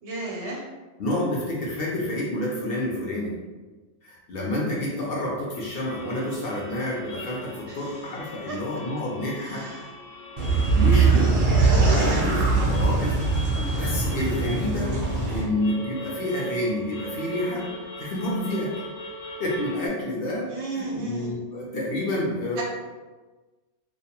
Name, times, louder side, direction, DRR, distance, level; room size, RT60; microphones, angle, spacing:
voice 1, 0.0-0.6 7.7-7.9 8.5-8.6 9.4-9.9 10.9-11.2 12.0-12.3 20.5-21.3 22.6-22.7, right 3 dB, 75° right, -3 dB, 0.9 m, -34 dB
voice 2, 1.0-3.4 4.0-9.7 10.7-15.0 15.3-17.7 18.0-18.8 19.4-22.6, left 1 dB, 60° left, -4 dB, 0.7 m, -29 dB
sound 1, 5.5-19.9, left 1 dB, 90° left, 0.9 m, -40 dB
sound 2, 10.4-15.4, right 4 dB, 55° right, 0.6 m, -21 dB
2.3 x 2.2 x 2.8 m, 1.3 s
omnidirectional pair, 1.2 m